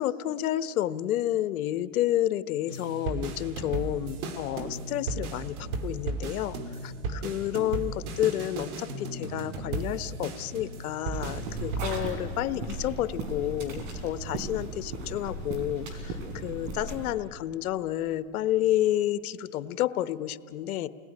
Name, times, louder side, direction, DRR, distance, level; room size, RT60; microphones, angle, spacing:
voice 1, 0.0-5.6 5.8-6.6 6.8-20.9, left 13 dB, 85° left, 14 dB, 1.1 m, -30 dB
sound 1, 2.7-12.1, right 3 dB, 85° right, 2.6 m, -35 dB
sound 2, 11.1-17.1, right 2 dB, 60° right, 5.2 m, -36 dB
29.5 x 19.5 x 9.8 m, 2.7 s
supercardioid pair, 140°, 42 cm